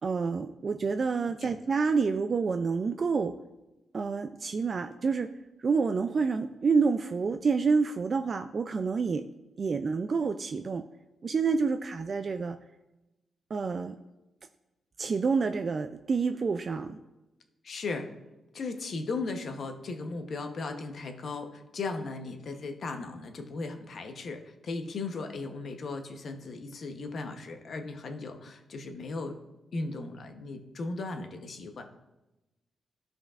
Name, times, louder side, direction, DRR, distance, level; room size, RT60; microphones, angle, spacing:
voice 1, 0.0-3.4 3.9-5.3 5.6-9.3 9.6-10.8 11.2-12.6 13.5-14.0 15.0-17.0, right 5 dB, 45° right, 7 dB, 0.3 m, -28 dB
voice 2, 17.6-18.1 18.5-29.4 29.7-31.8, left 3 dB, 60° left, 5 dB, 0.9 m, -37 dB
15.0 x 5.2 x 2.4 m, 1.0 s
cardioid pair, 115°, 0 cm